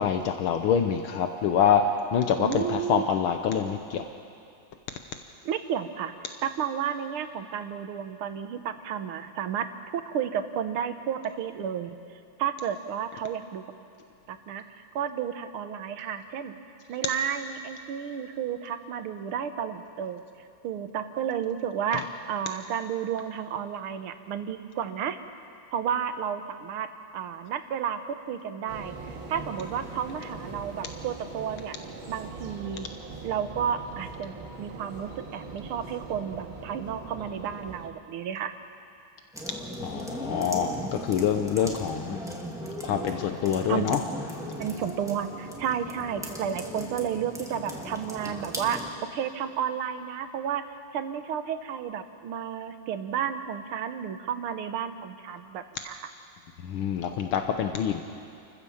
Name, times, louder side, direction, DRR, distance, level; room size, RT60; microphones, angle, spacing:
voice 1, 0.0-4.0 21.9-22.0 39.8-42.2 42.8-44.0 56.6-58.0, left 8 dB, 80° left, 6 dB, 1.7 m, -26 dB
voice 2, 2.4-3.1 5.4-6.1 6.4-9.7 9.9-12.0 12.4-13.6 14.3-16.6 16.9-20.2 20.6-25.2 25.7-26.9 27.1-31.8 32.1-32.9 33.2-38.5 43.7-43.9 44.6-48.8 49.1-50.6 50.9-56.1, right 8 dB, 85° right, 9 dB, 1.9 m, -32 dB
sound 1, 28.7-37.9, right 3 dB, 70° right, 2.7 m, -41 dB
sound 2, 39.3-48.9, equal, ahead, 2.4 m, -38 dB
29.5 x 15.0 x 7.2 m, 2.6 s
omnidirectional pair, 2.3 m